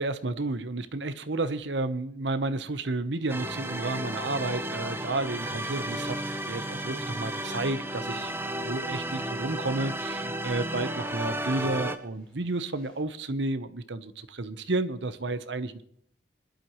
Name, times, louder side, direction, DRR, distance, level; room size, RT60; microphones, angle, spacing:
voice 1, 0.0-6.2 6.5-8.3 8.6-15.8, right 2 dB, 90° right, 11 dB, 1.0 m, -31 dB
sound 1, 3.2-13.0, equal, 5° left, 6.0 m, -55 dB
sound 2, 3.3-12.0, right 1 dB, 15° right, 0.9 m, -33 dB
21.5 x 12.0 x 3.1 m, 0.68 s
head